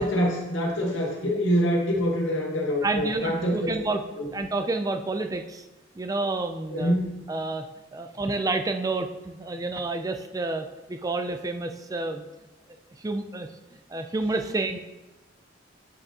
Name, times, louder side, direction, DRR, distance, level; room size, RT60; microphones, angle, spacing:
voice 1, 0.0-3.7 4.2-4.3 6.7-7.1, equal, 90° left, -1 dB, 1.9 m, -25 dB
voice 2, 2.8-4.0 4.3-5.7 6.0-7.0 7.3-7.7 7.9-12.2 13.0-13.5 13.9-14.8, right 2 dB, 20° right, 6 dB, 0.3 m, -29 dB
8.8 x 6.6 x 2.9 m, 1.1 s
head